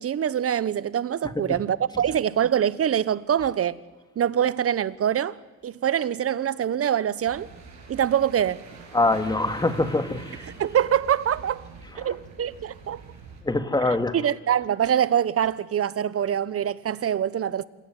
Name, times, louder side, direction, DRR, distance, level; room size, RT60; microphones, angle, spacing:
voice 1, 0.0-3.8 4.2-5.4 5.6-7.5 7.9-8.6 10.6-11.6 12.0-13.0 13.8-17.6, right 9 dB, 50° right, 1.0 m, -24 dB
voice 2, 1.2-1.6 8.9-10.5 12.0-12.1 13.4-14.2, left 2 dB, 15° left, 2.2 m, -24 dB
sound 1, 7.2-13.4, right 5 dB, 70° right, 6.8 m, -45 dB
27.0 x 17.5 x 9.3 m
cardioid pair, 90°, 30 cm